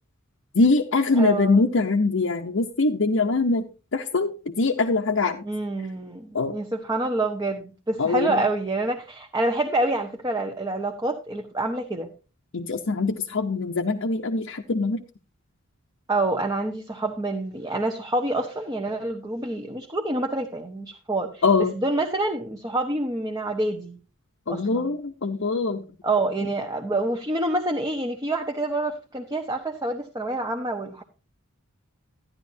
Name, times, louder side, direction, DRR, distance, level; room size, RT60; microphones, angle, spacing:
voice 1, 0.5-3.7 3.9-4.3 4.6-5.4 6.3-6.6 8.0-8.4 12.5-15.0 21.4-21.7 24.5-25.8, left 3 dB, 60° left, 1 dB, 0.7 m, -23 dB
voice 2, 1.1-1.6 5.4-12.1 16.1-24.0 24.5-24.9 26.0-31.0, right 2 dB, 15° right, 3 dB, 0.9 m, -27 dB
12.5 x 10.5 x 2.7 m, 0.31 s
head